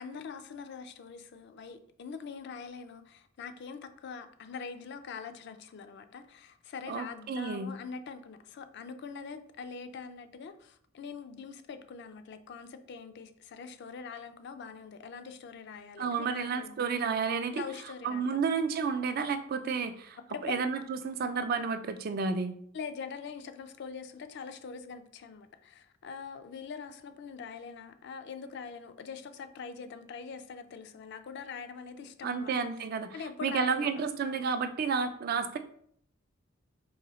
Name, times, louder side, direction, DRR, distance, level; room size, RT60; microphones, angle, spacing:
voice 1, 0.0-16.7 17.5-18.5 20.3-20.6 22.7-32.5 33.1-33.9, left 5 dB, 60° left, 0.4 m, -43 dB
voice 2, 6.9-7.7 16.0-17.6 18.0-22.5 32.2-33.1 33.4-35.6, right 5 dB, 50° right, 0.3 m, -31 dB
4.0 x 2.7 x 3.0 m
head